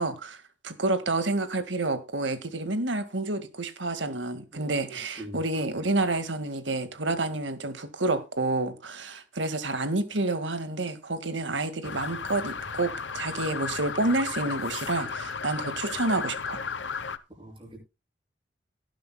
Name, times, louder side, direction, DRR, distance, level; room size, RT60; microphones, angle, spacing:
voice 1, 0.0-16.7, right 2 dB, 90° right, 1.9 m, -29 dB
voice 2, 4.5-5.4 17.3-17.8, right 1 dB, 30° right, 6.7 m, -44 dB
sound 1, 11.8-17.2, left 5 dB, 80° left, 0.9 m, -34 dB
18.5 x 10.5 x 2.3 m
head